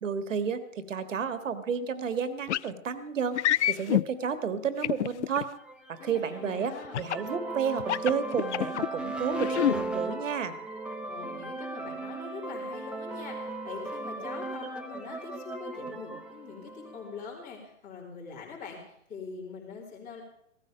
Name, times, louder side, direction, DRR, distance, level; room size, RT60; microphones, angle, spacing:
voice 1, 0.0-5.5 5.9-10.5, right 6 dB, 70° right, 12 dB, 1.7 m, -31 dB
sound 1, 2.5-2.7 3.3-4.0 4.8-5.4 6.9-7.3 7.8-8.9 9.3-9.8, left 12 dB, 60° left, 0.5 m, -26 dB
sound 2, 5.6-17.4, right 2 dB, 5° right, 0.8 m, -37 dB
voice 2, 6.0-7.0 11.1-20.2, left 5 dB, 20° left, -2 dB, 3.6 m, -43 dB
16.5 x 13.5 x 5.1 m, 0.76 s
hypercardioid pair, 130°, 40 cm